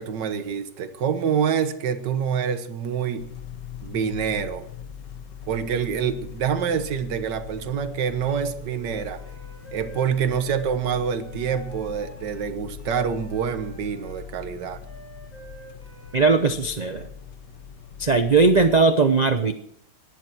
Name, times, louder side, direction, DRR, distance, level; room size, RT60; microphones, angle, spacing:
voice 1, 0.0-3.3 3.8-4.7 5.5-9.2 9.7-14.8, right 7 dB, 75° right, 10 dB, 1.7 m, -26 dB
sound 1, 3.2-18.8, left 7 dB, 80° left, 1.7 m, -41 dB
Wind instrument woodwind instrument, 8.6-16.9, equal, 50° left, 5.8 m, -48 dB
voice 2, 16.1-17.1 18.0-19.5, right 4 dB, 50° right, 8 dB, 0.4 m, -19 dB
18.0 x 11.0 x 4.5 m, 0.69 s
omnidirectional pair, 1.9 m